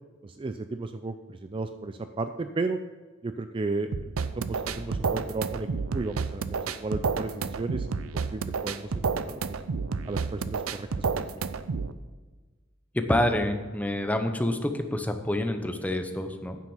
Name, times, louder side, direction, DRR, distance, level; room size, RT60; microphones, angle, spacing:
voice 1, 0.2-2.8 3.2-5.7 5.9-7.9 8.1-9.4 10.1-10.9 11.1-11.3, right 3 dB, 25° right, 9 dB, 0.4 m, -34 dB
sound 1, 3.9-11.9, right 5 dB, 90° right, 0.5 m, -30 dB
sound 2, 4.7-7.5, equal, 50° right, 1.2 m, -46 dB
voice 2, 12.9-16.6, left 1 dB, 5° left, 6 dB, 0.8 m, -27 dB
9.6 x 7.4 x 5.6 m, 1.3 s
head